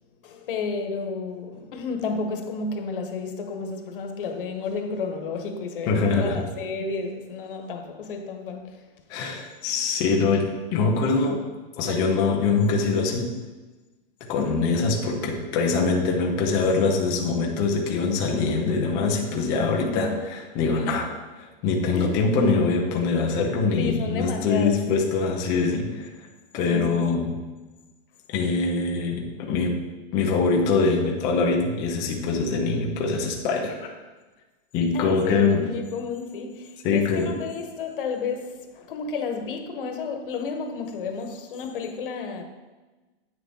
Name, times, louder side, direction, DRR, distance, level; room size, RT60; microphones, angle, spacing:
voice 1, 0.2-8.9 9.2-9.3 19.8-20.2 21.9-22.2 23.8-24.9 26.7-27.0 34.9-42.4, left 4 dB, 60° left, 1.1 m, -32 dB
voice 2, 5.9-6.4 9.1-11.4 11.8-13.3 14.3-26.1 26.5-27.3 28.3-29.8 30.1-33.9 34.7-35.6 36.8-37.3, left 4 dB, 10° left, 0.4 m, -23 dB
9.1 x 6.4 x 3.6 m
supercardioid pair, 175°, 30 cm